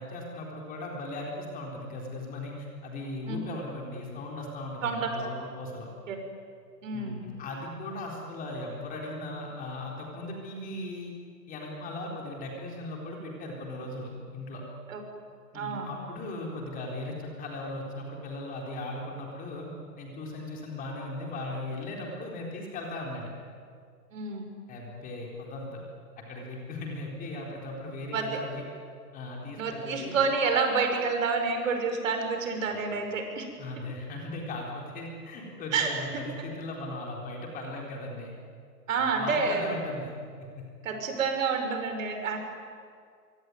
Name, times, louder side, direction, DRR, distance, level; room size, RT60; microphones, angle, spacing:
voice 1, 0.0-5.9 6.9-11.1 11.5-14.6 15.5-19.7 20.0-23.3 24.7-25.8 26.3-28.6 29.1-30.2 33.6-38.3 39.0-40.6, left 2 dB, 15° left, -1 dB, 4.1 m, -38 dB
voice 2, 6.8-7.2 14.9-15.0 15.5-15.9 24.1-24.4 28.1-28.4 29.6-33.5 35.7-35.9 38.9-39.6 40.8-42.4, right 5 dB, 50° right, 5 dB, 5.6 m, -28 dB
25.0 x 24.0 x 9.4 m, 2.2 s
hypercardioid pair, 145°, 49 cm